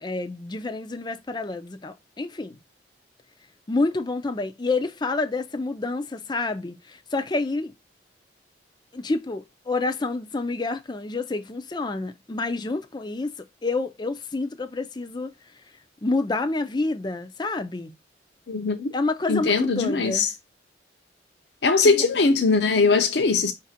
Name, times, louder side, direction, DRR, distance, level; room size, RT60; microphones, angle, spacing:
voice 1, 0.0-2.6 3.7-7.7 8.9-13.3 13.6-15.3 16.0-17.9 18.9-20.3 21.8-22.1, left 3 dB, 25° left, 0.5 m, -28 dB
voice 2, 18.5-18.9 19.3-20.3 21.6-23.5, left 4 dB, 65° left, 0.6 m, -20 dB
5.2 x 2.6 x 4.0 m
head